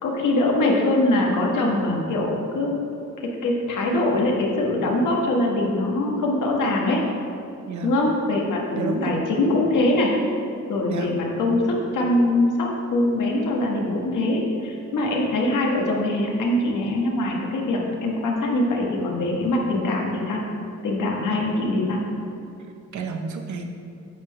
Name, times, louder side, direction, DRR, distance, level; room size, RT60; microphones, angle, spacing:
voice 1, 0.0-2.8 3.2-7.0 7.8-10.1 10.7-20.4 20.8-22.0, left 2 dB, 85° left, -1 dB, 1.5 m, -23 dB
voice 2, 8.7-9.2 10.9-11.2 21.3-21.4 22.9-23.7, right 5 dB, 70° right, 5 dB, 0.9 m, -30 dB
8.6 x 4.0 x 6.3 m, 2.5 s
cardioid pair, 90°, 30 cm